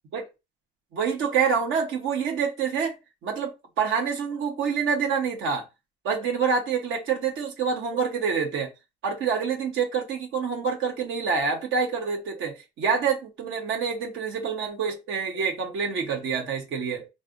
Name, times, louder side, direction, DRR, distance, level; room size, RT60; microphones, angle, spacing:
voice 1, 0.9-2.9 3.2-5.6 6.0-8.7 9.0-17.1, right 6 dB, 80° right, 1.0 m, -27 dB
3.2 x 2.6 x 3.8 m
cardioid pair, 90°, 20 cm